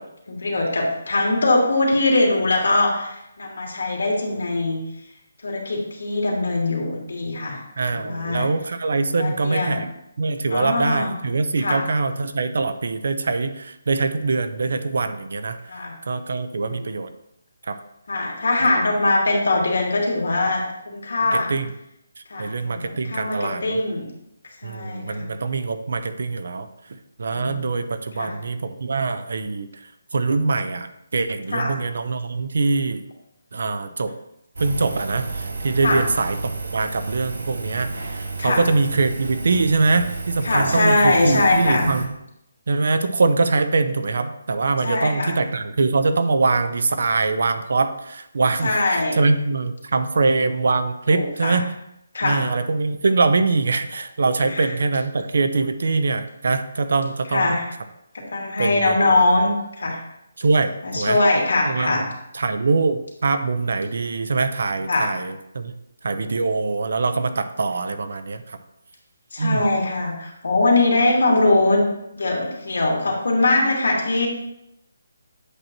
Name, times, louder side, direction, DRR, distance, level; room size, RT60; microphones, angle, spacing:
voice 1, 0.3-4.8 5.4-7.6 7.9-8.5 9.2-9.8 10.5-11.1 11.6-11.8 15.7-15.9 16.5-16.9 18.1-21.5 22.3-24.1 24.6-25.3 27.3-27.7 28.2-28.3 31.5-31.7 35.8-36.0 38.4-38.6 40.4-41.9 44.8-45.3 48.6-49.2 51.1-51.6 52.1-52.4 54.4-54.7 57.3-57.6 58.3-60.0 60.8-62.0 64.9-65.1 69.3-71.8 72.2-74.3, left 2 dB, 75° left, -1 dB, 2.2 m, -21 dB
voice 2, 7.8-9.9 10.2-15.6 16.1-17.1 17.7-17.8 18.6-18.7 21.3-21.7 22.4-23.8 24.6-26.7 27.2-29.7 30.1-33.0 33.5-34.1 34.6-42.1 42.7-51.7 52.2-57.5 58.6-59.2 60.4-61.2 61.7-62.0 62.3-65.7 66.0-68.6 69.4-69.6, right 3 dB, 60° right, 10 dB, 0.6 m, -23 dB
Engine, 34.6-42.1, right 3 dB, 85° right, 1.2 m, -32 dB
8.1 x 2.9 x 5.9 m, 0.82 s
hypercardioid pair, 175°, 0 cm